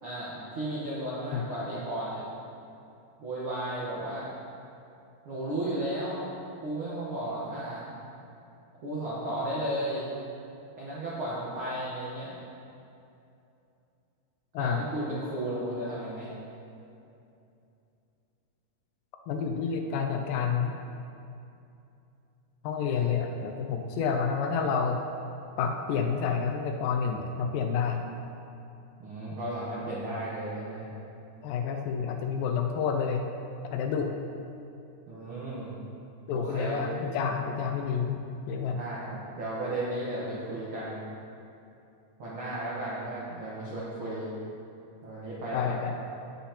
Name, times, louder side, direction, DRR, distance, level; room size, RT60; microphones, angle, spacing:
voice 1, 0.0-2.3 3.2-4.3 5.2-6.3 6.6-7.9 8.8-10.1 10.8-12.4 14.6-16.3 29.0-30.9 35.1-35.7 36.3-36.8 38.7-41.0 42.2-44.3 45.0-45.8, right 1 dB, 90° right, -7 dB, 1.1 m, -34 dB
voice 2, 19.3-20.7 22.6-25.0 25.6-28.0 31.4-33.2 33.7-34.1 36.3-38.8 45.5-46.0, left 6 dB, 80° left, 3 dB, 2.1 m, -29 dB
16.0 x 5.7 x 2.9 m, 2.7 s
omnidirectional pair, 4.3 m